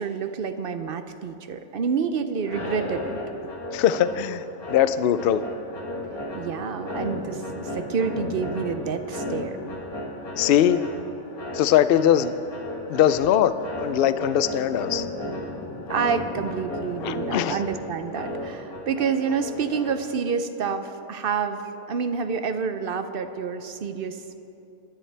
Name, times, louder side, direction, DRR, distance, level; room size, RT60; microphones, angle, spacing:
voice 1, 0.0-3.1 3.4-3.5 6.3-9.6 15.9-24.4, right 6 dB, 60° right, 9 dB, 0.6 m, -28 dB
sound 1, 2.4-20.3, left 1 dB, 90° left, 2.2 m, -34 dB
voice 2, 3.7-5.4 10.4-10.8 11.5-12.3 12.9-15.0 17.0-17.6, left 10 dB, 70° left, 12 dB, 0.5 m, -21 dB
22.5 x 11.0 x 3.3 m, 2.8 s
omnidirectional pair, 1.5 m